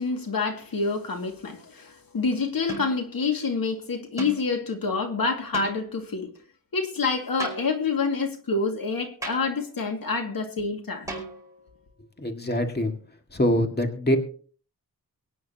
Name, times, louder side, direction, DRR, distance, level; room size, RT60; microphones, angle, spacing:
voice 1, 0.0-6.3 6.7-11.1, left 4 dB, 80° left, 2.3 m, -27 dB
sound 1, 0.9-1.2 2.7-3.1 4.2-4.5 5.5-6.0 7.4-8.0 9.2-9.7 11.1-11.7, right 2 dB, 10° right, 5.1 m, -37 dB
voice 2, 12.2-12.9 13.3-14.2, equal, 30° left, 2.0 m, -24 dB
23.5 x 9.4 x 2.9 m
wide cardioid pair, 90°, 35 cm